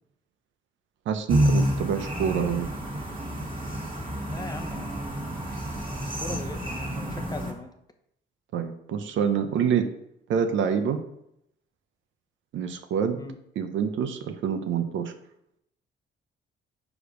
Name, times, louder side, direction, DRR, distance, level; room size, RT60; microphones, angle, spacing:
voice 1, 1.1-2.7 8.5-9.9 10.3-11.0 12.5-13.2 13.6-15.1, right 7 dB, 75° right, 7 dB, 0.8 m, -26 dB
sound 1, 1.3-7.5, equal, 25° right, 1.6 m, -29 dB
voice 2, 4.3-5.4 5.8-7.7 13.2-13.4, left 2 dB, 20° left, 6 dB, 0.8 m, -40 dB
5.1 x 4.9 x 5.1 m, 0.77 s
cardioid pair, 90°, 20 cm